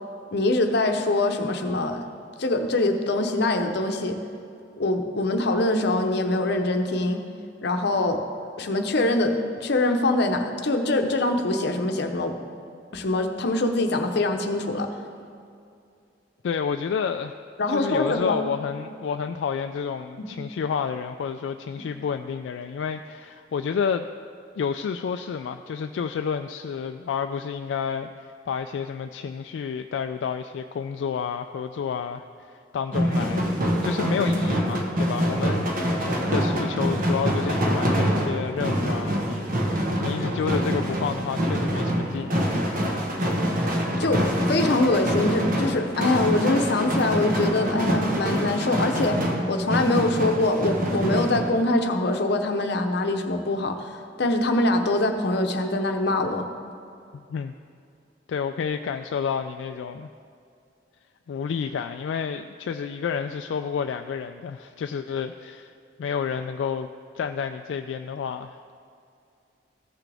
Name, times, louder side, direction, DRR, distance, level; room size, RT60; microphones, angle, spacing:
voice 1, 0.3-2.0 2.4-4.2 4.8-7.2 7.6-8.2 8.6-12.4 12.9-14.9 17.6-18.4 44.0-49.2 49.5-56.5, left 2 dB, 65° left, 5 dB, 0.8 m, -24 dB
voice 2, 16.4-17.4 17.7-24.1 24.6-42.8 57.1-57.5 58.3-60.1 61.3-65.7 66.0-66.9 67.2-68.6, left 6 dB, 85° left, 6 dB, 0.3 m, -30 dB
sound 1, 32.9-51.5, equal, 50° right, 1.2 m, -25 dB
15.0 x 6.0 x 3.4 m, 2.5 s
head